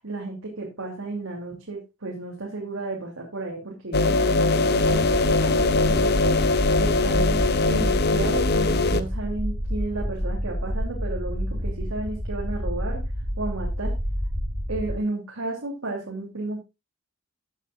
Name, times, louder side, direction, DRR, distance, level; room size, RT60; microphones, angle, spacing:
voice 1, 0.0-6.3 6.8-13.0 13.4-13.9 14.7-16.6, right 2 dB, 80° right, -2 dB, 3.0 m, -33 dB
sound 1, 3.9-9.0, left 3 dB, 50° left, 0.9 m, -21 dB
sound 2, 4.8-15.0, equal, 5° right, 4.2 m, -29 dB
15.0 x 8.3 x 2.4 m, 0.25 s
head